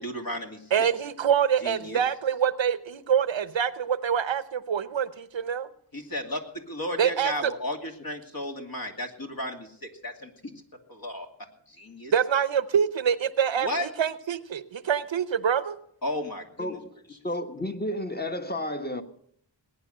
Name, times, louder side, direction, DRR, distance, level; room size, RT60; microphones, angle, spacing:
voice 1, 0.0-0.9 1.6-2.0 5.9-10.5 10.9-11.3 11.7-12.1 13.6-13.9 16.0-16.8, left 1 dB, 50° left, 3 dB, 2.7 m, -34 dB
voice 2, 0.7-5.7 7.0-7.5 12.1-15.8, right 8 dB, 90° right, 14 dB, 0.9 m, -25 dB
voice 3, 16.6-17.0 17.2-19.0, left 1 dB, 20° left, 7 dB, 1.5 m, -31 dB
19.5 x 9.6 x 6.6 m, 0.66 s
wide cardioid pair, 55°, 44 cm